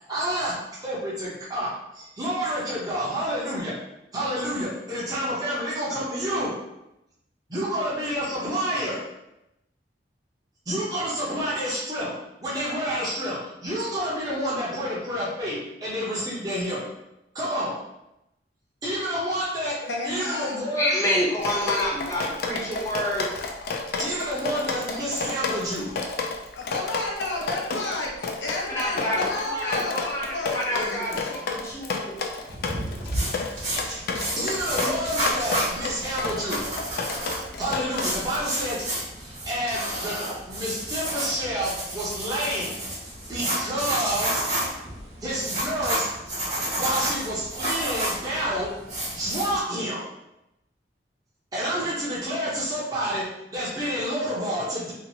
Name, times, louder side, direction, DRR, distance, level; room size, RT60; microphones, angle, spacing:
voice 1, 0.1-3.7 4.1-6.5 7.5-9.0 10.7-12.1 12.4-16.9 17.3-17.8 18.8-21.0 24.0-25.9 33.9-34.0 34.3-36.6 37.6-38.8 39.4-42.7 43.3-44.4 45.2-46.1 46.7-48.8 49.1-50.0 51.5-54.9, equal, 20° right, -7 dB, 0.7 m, -29 dB
voice 2, 19.8-20.7 26.5-31.2, left 2 dB, 90° left, -2 dB, 0.7 m, -31 dB
voice 3, 20.7-23.3 28.7-32.2, equal, 20° left, -4 dB, 0.7 m, -28 dB
Drip, 21.4-38.4, left 4 dB, 60° left, 0.4 m, -31 dB
sound 1, 32.5-49.6, right 1 dB, 40° right, 1.3 m, -31 dB
2.8 x 2.4 x 2.7 m, 0.89 s
head